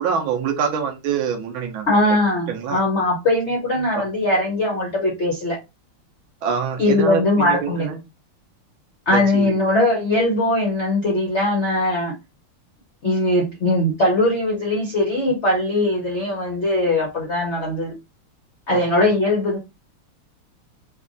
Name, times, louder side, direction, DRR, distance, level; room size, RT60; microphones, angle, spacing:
voice 1, 0.0-1.9 2.5-2.8 3.9-4.1 6.4-8.0 9.1-9.6 18.7-19.1, right 6 dB, 70° right, 1.4 m, -25 dB
voice 2, 1.9-5.6 6.8-7.9 9.1-12.1 13.0-17.9 18.7-19.6, left 1 dB, 60° left, 0.7 m, -20 dB
4.4 x 2.4 x 2.5 m
omnidirectional pair, 2.4 m